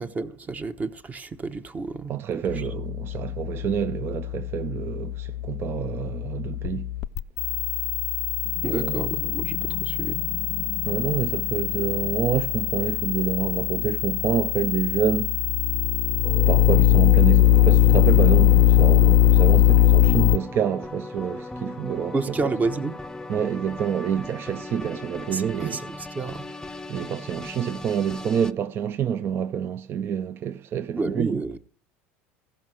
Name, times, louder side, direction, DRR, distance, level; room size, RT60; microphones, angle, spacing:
voice 1, 0.0-2.7 8.6-10.2 22.1-23.0 25.3-26.5 30.9-31.6, right 3 dB, 25° right, 0.9 m, -30 dB
voice 2, 2.1-6.9 8.6-9.1 10.8-15.5 16.5-22.5 23.3-25.8 26.9-31.4, right 8 dB, 40° right, 0.5 m, -27 dB
sound 1, 2.5-20.4, left 14 dB, 55° left, 0.4 m, -21 dB
sound 2, 16.2-28.5, left 2 dB, 10° left, 0.7 m, -37 dB
15.0 x 5.6 x 6.2 m
supercardioid pair, 95°, 6 cm